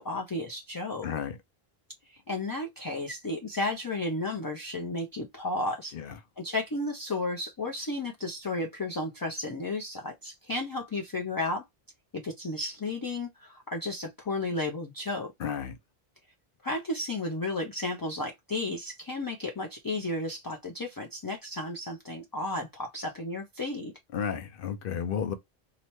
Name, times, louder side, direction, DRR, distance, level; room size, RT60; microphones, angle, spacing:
voice 1, 0.0-1.1 2.1-6.0 6.4-11.6 12.1-15.3 16.6-23.9, left 2 dB, 35° left, 0.3 m, -33 dB
voice 2, 1.0-1.4 5.9-6.1 15.4-15.8 24.1-25.3, left 7 dB, 65° left, 0.7 m, -32 dB
2.8 x 2.1 x 2.9 m
omnidirectional pair, 1.0 m